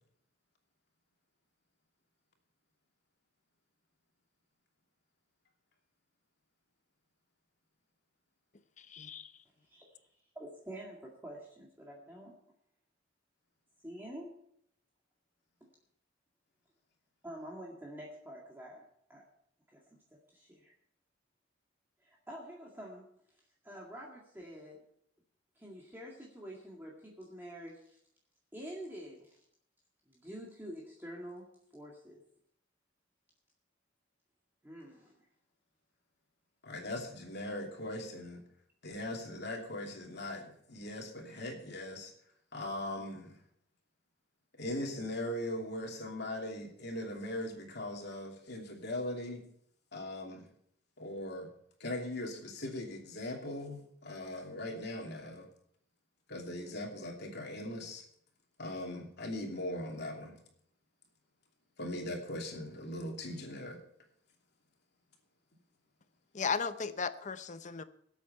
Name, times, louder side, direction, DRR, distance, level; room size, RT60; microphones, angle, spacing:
voice 1, 8.9-9.3 66.3-67.8, left 5 dB, 40° left, 12 dB, 0.7 m, -35 dB
voice 2, 10.4-12.4 13.8-14.3 15.6-15.7 17.2-19.2 19.7-19.8 20.3-20.7 22.0-23.0 23.6-24.8 25.6-27.8 28.5-29.3 30.1-31.4 31.7-32.2 34.6-35.2, equal, 10° right, -3 dB, 2.1 m, -47 dB
voice 3, 36.6-38.4 38.8-42.1 42.5-43.3 44.6-49.4 49.9-50.4 51.0-51.5 51.8-55.5 56.3-58.0 58.6-60.4 61.8-63.8, left 1 dB, 60° left, 2 dB, 2.8 m, -40 dB
18.5 x 8.3 x 5.6 m, 0.69 s
head